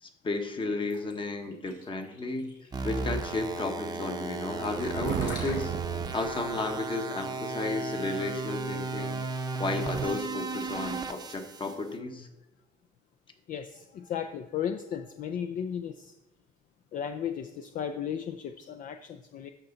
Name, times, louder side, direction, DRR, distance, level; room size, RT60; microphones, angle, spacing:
voice 1, 0.0-2.5 2.8-12.3, left 3 dB, 30° left, 6 dB, 1.2 m, -33 dB
sound 1, 0.9-8.6, left 3 dB, 85° left, 2.8 m, -49 dB
sound 2, 2.7-11.7, right 4 dB, 25° right, 0.7 m, -35 dB
Thunder, 4.6-7.0, right 11 dB, 60° right, 0.4 m, -36 dB
voice 2, 13.5-16.1 16.9-19.5, left 8 dB, 50° left, 7 dB, 0.4 m, -35 dB
13.0 x 4.4 x 3.9 m, 0.97 s
cardioid pair, 110°, 17 cm